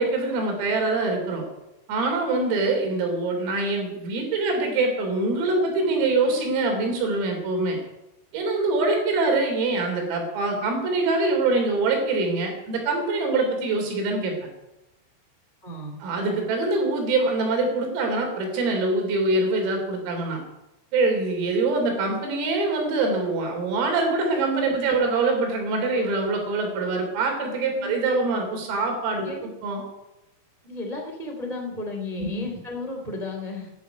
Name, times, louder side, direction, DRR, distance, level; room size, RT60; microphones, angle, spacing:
voice 1, 0.0-1.4 1.9-7.8 8.3-14.3 16.0-20.4 20.9-29.8 32.2-32.3, right 3 dB, 80° right, 3 dB, 6.1 m, -24 dB
voice 2, 15.6-16.0 27.8-28.0 29.2-29.5 30.6-33.7, left 2 dB, 40° right, 1 dB, 0.6 m, -33 dB
12.0 x 11.5 x 9.3 m, 0.97 s
omnidirectional pair, 5.9 m